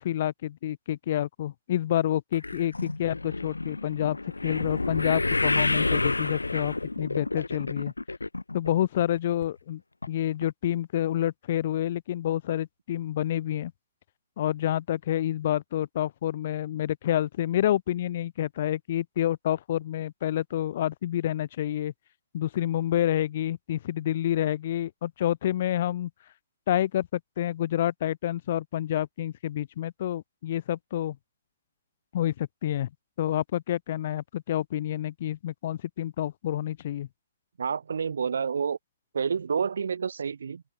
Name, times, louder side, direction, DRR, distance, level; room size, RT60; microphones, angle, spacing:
voice 1, 0.0-4.2 4.4-7.9 8.5-9.8 10.1-13.7 14.4-21.9 22.3-26.1 26.7-31.2 32.1-32.9 33.2-37.1, left 12 dB, 50° left, 2.0 m, -28 dB
sound 1, 2.3-8.7 9.0-9.5 10.0-10.1 10.4-10.5, left 2 dB, 90° left, 0.7 m, -29 dB
voice 2, 37.6-38.8 39.1-40.6, right 6 dB, 70° right, 2.1 m, -29 dB
open air
figure-of-eight pair, 125°, 0 cm